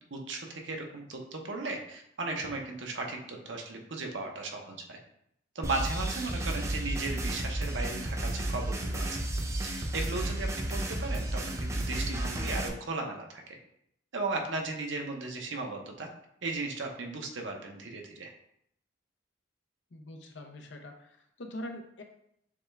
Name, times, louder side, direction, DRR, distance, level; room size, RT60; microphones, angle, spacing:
voice 1, 0.1-5.0 5.5-9.1 9.5-13.6 14.1-16.1 16.4-18.3, right 3 dB, 80° right, 2 dB, 0.8 m, -36 dB
sound 1, 5.6-12.7, right 1 dB, 15° right, 0.4 m, -32 dB
voice 2, 19.9-22.0, left 1 dB, 70° left, 4 dB, 0.6 m, -43 dB
6.9 x 2.3 x 3.3 m, 0.75 s
head